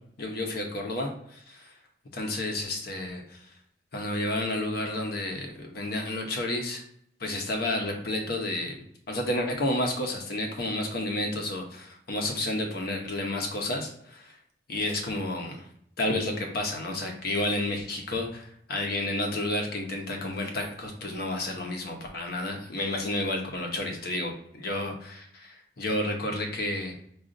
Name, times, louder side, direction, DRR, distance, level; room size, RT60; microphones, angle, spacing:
voice 1, 0.2-1.7 2.1-3.5 3.9-6.8 7.2-8.8 9.1-14.4 14.7-15.6 16.0-26.9, left 1 dB, 60° left, 2 dB, 0.8 m, -31 dB
4.9 x 2.4 x 2.5 m, 0.69 s
head